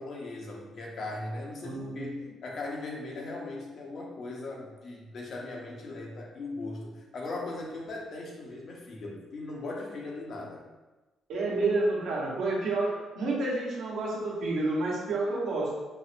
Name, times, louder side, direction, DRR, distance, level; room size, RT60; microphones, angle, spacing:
voice 1, 0.0-10.6, left 2 dB, 60° left, -1 dB, 0.8 m, -39 dB
voice 2, 1.6-2.2 11.3-15.7, right 2 dB, 75° right, -4 dB, 1.0 m, -29 dB
4.6 x 2.1 x 2.6 m, 1.2 s
cardioid pair, 90°, 0 cm